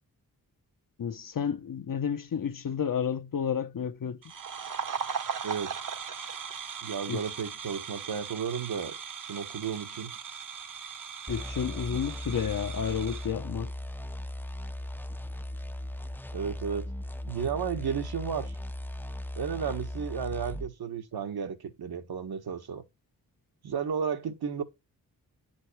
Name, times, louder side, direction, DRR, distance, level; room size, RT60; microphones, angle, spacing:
voice 1, 1.0-4.2 7.1-7.2 11.3-13.7, left 7 dB, 60° left, 1.0 m, -31 dB
sound 1, 4.2-13.3, right 6 dB, 55° right, 1.2 m, -38 dB
voice 2, 5.4-5.8 6.8-10.1 16.3-16.9 17.3-18.5 19.4-22.8 23.6-24.6, right 7 dB, 75° right, 1.7 m, -33 dB
sound 2, 11.3-20.7, left 1 dB, 5° left, 0.6 m, -38 dB
10.0 x 6.2 x 3.2 m
supercardioid pair, 45°, 38 cm